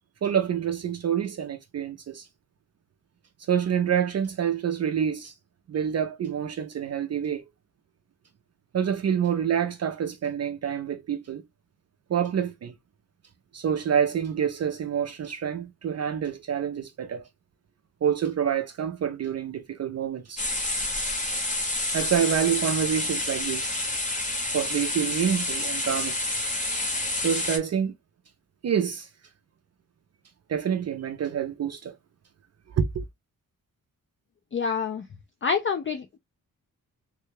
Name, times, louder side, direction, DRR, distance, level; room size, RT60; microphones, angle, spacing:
voice 1, 0.2-2.3 3.5-5.3 5.7-7.4 8.7-11.4 12.1-12.7 13.5-17.3 18.0-20.4 21.9-23.8 24.5-26.2 27.2-27.9 28.6-29.1 30.5-32.0 32.7-33.0, right 8 dB, 50° right, 0.4 m, -27 dB
sound 1, 20.4-27.6, left 1 dB, 20° left, 0.8 m, -29 dB
voice 2, 34.5-35.0 35.4-36.2, left 6 dB, 35° left, 0.4 m, -27 dB
3.2 x 2.2 x 3.1 m
wide cardioid pair, 160°, 35 cm